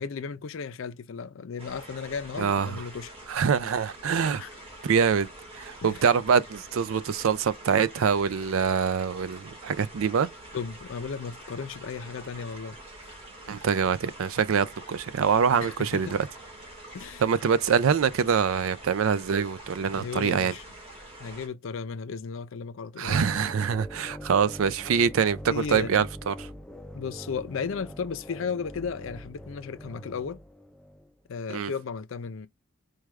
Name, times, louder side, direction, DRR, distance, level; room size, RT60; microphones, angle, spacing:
voice 1, 0.0-3.1 4.4-4.5 5.8-6.0 10.5-12.8 13.0-13.2 15.6-16.2 16.9-17.2 19.9-20.6 21.2-23.3 25.5-26.1 26.9-30.4 31.3-32.5, left 5 dB, 70° left, 0.5 m, -35 dB
sound 1, 1.6-21.5, right 1 dB, 30° right, 1.6 m, -46 dB
voice 2, 2.4-2.8 3.3-4.4 4.8-10.3 13.5-16.3 17.2-20.5 23.0-26.3 31.5-31.7, right 6 dB, 80° right, 0.4 m, -25 dB
sound 2, 23.1-31.1, equal, 5° left, 0.3 m, -43 dB
4.7 x 2.3 x 3.1 m
head